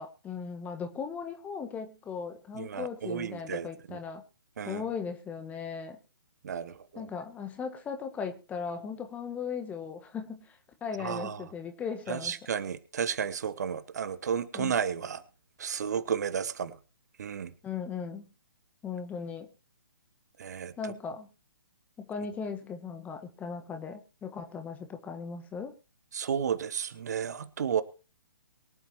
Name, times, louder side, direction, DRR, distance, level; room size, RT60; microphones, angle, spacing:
voice 1, 0.0-4.2 4.6-6.0 6.9-10.6 10.8-12.4 14.5-14.7 17.6-18.2 18.8-19.5 20.8-21.3 22.0-25.7, left 6 dB, 15° left, 7 dB, 1.4 m, -37 dB
voice 2, 2.6-4.0 4.6-4.8 6.4-7.1 11.0-11.5 12.1-15.2 15.6-16.8 17.2-17.5 20.4-20.7 26.1-27.8, right 7 dB, 50° right, 13 dB, 1.1 m, -32 dB
23.0 x 8.6 x 3.0 m, 0.35 s
figure-of-eight pair, 130°, 11 cm